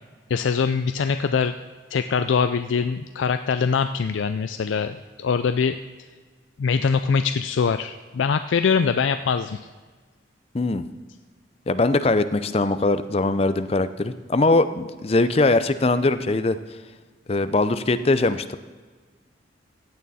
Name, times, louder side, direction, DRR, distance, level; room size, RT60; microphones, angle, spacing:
voice 1, 0.3-1.5 1.9-5.8 6.6-9.6, left 6 dB, 85° left, 9 dB, 0.4 m, -23 dB
voice 2, 11.7-16.6 17.3-18.6, left 2 dB, 30° left, 12 dB, 0.5 m, -21 dB
16.0 x 8.6 x 4.2 m, 1.4 s
head